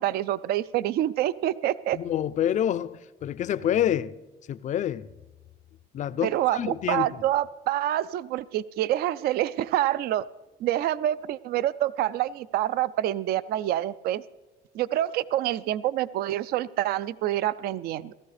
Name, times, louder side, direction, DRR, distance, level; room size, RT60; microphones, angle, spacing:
voice 1, 0.0-2.0 6.2-10.3 10.6-14.2 14.7-18.1, right 13 dB, 65° right, 0.4 m, -27 dB
voice 2, 1.9-4.1 4.5-5.1 5.9-7.1, left 10 dB, 45° left, 0.4 m, -27 dB
17.0 x 14.0 x 3.3 m
cardioid pair, 110°, 17 cm